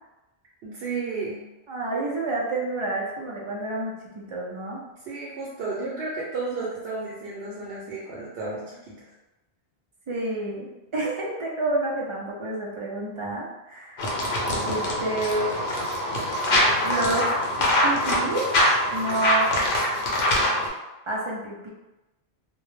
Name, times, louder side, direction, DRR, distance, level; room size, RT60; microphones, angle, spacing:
voice 1, 0.6-1.4 5.1-9.1, right 3 dB, 85° right, -6 dB, 0.8 m, -32 dB
voice 2, 1.7-4.8 10.1-14.1 14.6-15.5 16.8-18.4 18.9-19.5 21.1-21.7, right 2 dB, 50° right, -3 dB, 0.3 m, -29 dB
sound 1, 14.0-20.7, left 1 dB, 85° left, 0.9 m, -24 dB
2.1 x 2.0 x 3.0 m, 1.0 s
omnidirectional pair, 1.0 m